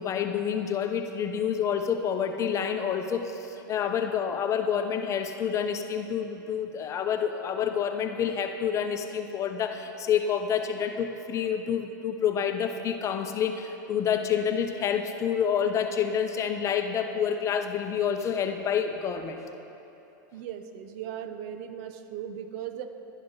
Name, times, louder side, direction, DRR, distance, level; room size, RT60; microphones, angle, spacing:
voice 1, 0.0-19.4, left 8 dB, 30° left, 6 dB, 0.9 m, -28 dB
voice 2, 20.3-22.9, right 9 dB, 55° right, 9 dB, 0.8 m, -38 dB
11.0 x 10.5 x 5.6 m, 3.0 s
supercardioid pair, 125°, 11 cm